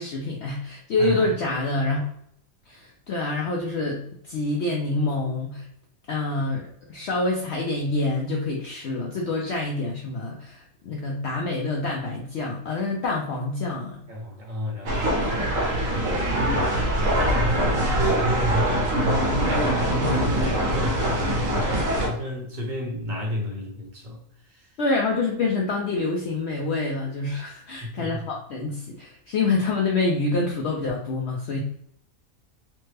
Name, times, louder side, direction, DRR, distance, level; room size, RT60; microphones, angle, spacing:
voice 1, 0.0-2.1 2.7-5.7 6.1-14.0 24.8-31.6, left 3 dB, 65° left, -1 dB, 0.7 m, -27 dB
voice 2, 1.0-1.3 14.1-15.1 17.1-18.9 19.3-24.7 27.8-28.2, left 1 dB, 40° right, -2 dB, 0.9 m, -32 dB
sound 1, 14.9-22.1, right 1 dB, 70° right, 1.2 m, -23 dB
3.2 x 2.1 x 3.2 m, 0.68 s
omnidirectional pair, 1.5 m